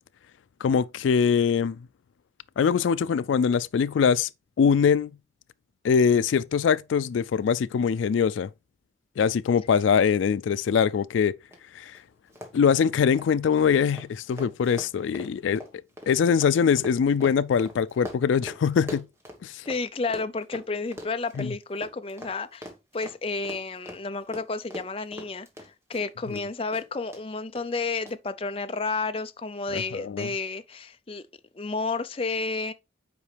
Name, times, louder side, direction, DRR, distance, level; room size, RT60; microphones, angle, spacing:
voice 1, 0.6-1.8 2.6-4.3 4.6-5.1 5.8-8.5 9.2-11.3 11.7-12.0 12.5-15.6 16.1-19.1 19.4-19.7 21.4-21.5 26.3-26.4 29.7-30.3, left 6 dB, 90° left, 0.3 m, -23 dB
Run, 11.5-11.6 11.9-12.0 12.3-19.8 20.1-26.4 26.7-27.2 27.6-27.7 28.1-28.2, left 1 dB, 15° right, 1.3 m, -42 dB
voice 2, 19.7-22.7 22.9-31.2 31.5-32.7, left 3 dB, 30° left, 0.5 m, -31 dB
8.4 x 4.8 x 3.3 m
head